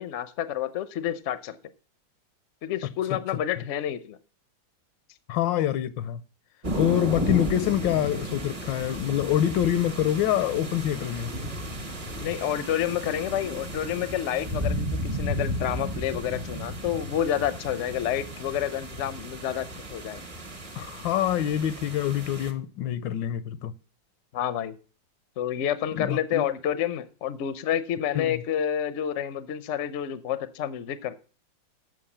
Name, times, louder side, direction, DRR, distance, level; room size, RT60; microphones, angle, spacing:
voice 1, 0.0-1.6 2.6-4.2 12.2-20.2 24.3-24.7 25.4-31.1, left 10 dB, 60° left, 0.7 m, -29 dB
voice 2, 5.3-6.2 6.7-11.3 20.8-23.7 25.9-26.4 28.1-28.4, left 11 dB, 80° left, 1.3 m, -26 dB
sound 1, 6.6-22.5, equal, 25° right, 0.8 m, -34 dB
7.9 x 6.1 x 7.2 m
omnidirectional pair, 2.1 m